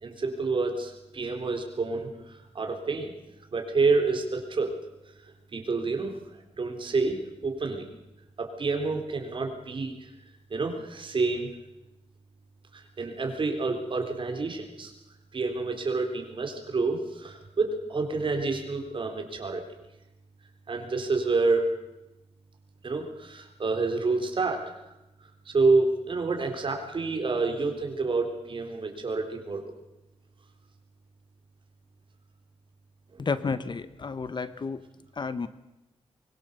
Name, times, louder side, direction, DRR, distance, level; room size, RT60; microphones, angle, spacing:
voice 1, 0.0-3.1 3.5-4.7 5.1-5.2 5.5-6.2 6.6-7.9 8.4-10.1 10.5-11.5 12.7-14.9 15.3-19.6 20.7-21.7 22.8-24.6 25.5-29.7 33.2-33.3, right 3 dB, 50° right, 3 dB, 3.9 m, -28 dB
voice 2, 33.2-34.8 35.2-35.5, left 4 dB, 45° left, 13 dB, 1.1 m, -31 dB
24.0 x 22.0 x 6.9 m, 0.96 s
wide cardioid pair, 140°, 11 cm